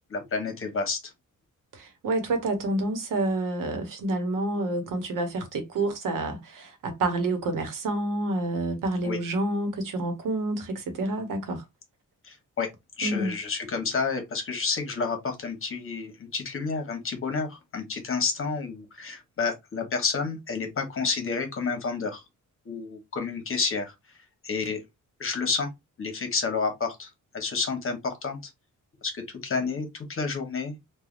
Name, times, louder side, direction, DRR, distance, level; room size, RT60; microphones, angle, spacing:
voice 1, 0.1-1.0 9.0-9.2 12.2-12.7 13.0-22.2 22.6-23.9 24.4-24.8 25.2-25.7 26.0-28.4 29.0-30.8, left 4 dB, 45° left, 1.0 m, -30 dB
voice 2, 1.7-11.6 13.0-13.3, right 2 dB, 85° right, 0.9 m, -28 dB
3.3 x 2.3 x 2.4 m
wide cardioid pair, 120°, 31 cm